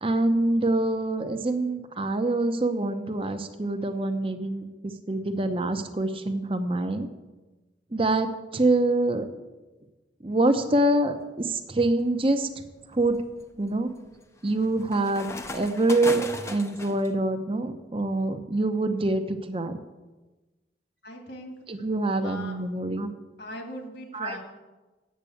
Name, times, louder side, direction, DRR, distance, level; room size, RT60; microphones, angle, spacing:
voice 1, 0.0-7.1 7.9-9.3 10.2-12.5 12.9-13.2 13.6-13.9 14.4-19.8 21.7-23.1 24.1-24.4, right 2 dB, 30° right, 8 dB, 0.7 m, -25 dB
sound 1, 11.5-11.9 12.5-17.1, left 2 dB, 15° left, 0.6 m, -38 dB
voice 2, 21.0-21.5 22.2-22.6 23.4-24.4, left 1 dB, 65° left, 2 dB, 2.3 m, -39 dB
8.4 x 7.4 x 8.5 m, 1.2 s
head